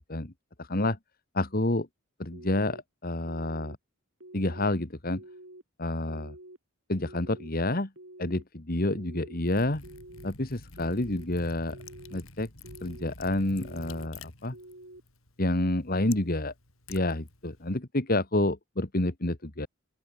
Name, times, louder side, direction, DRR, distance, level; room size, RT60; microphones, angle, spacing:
voice 1, 0.6-1.0 1.3-1.9 2.2-3.8 4.3-5.2 5.8-6.3 6.9-7.9 8.2-9.8 10.2-11.8 12.1-12.5 12.8-14.6 15.4-16.5 16.9-19.7, left 1 dB, 45° left, 1.9 m, -29 dB
sound 1, 2.3-2.8 3.3-3.8 4.2-4.7 5.1-5.6 6.1-6.6 7.0-7.5 8.0-8.4 8.9-9.4 9.8-10.3 10.8-11.3 11.7-12.2 12.6-13.1 13.6-14.1 14.5-15.0, right 1 dB, 65° right, 4.6 m, -48 dB
Liquid, 9.4-17.7, left 3 dB, 85° left, 6.5 m, -49 dB
open air
head